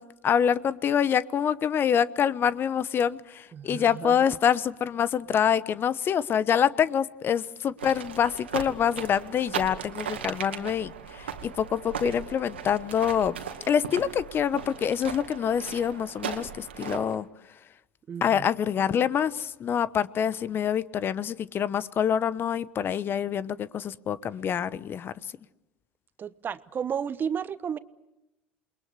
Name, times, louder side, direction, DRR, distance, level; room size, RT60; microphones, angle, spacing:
voice 1, 0.0-10.9 11.4-13.3 13.7-17.3 18.2-25.1, left 8 dB, 40° left, 1.0 m, -26 dB
voice 2, 3.5-4.3 18.1-18.5 26.2-27.8, right 7 dB, 35° right, 1.2 m, -33 dB
sound 1, 7.8-17.2, right 7 dB, 85° right, 2.3 m, -38 dB
28.5 x 22.0 x 8.2 m
hypercardioid pair, 75°, 6 cm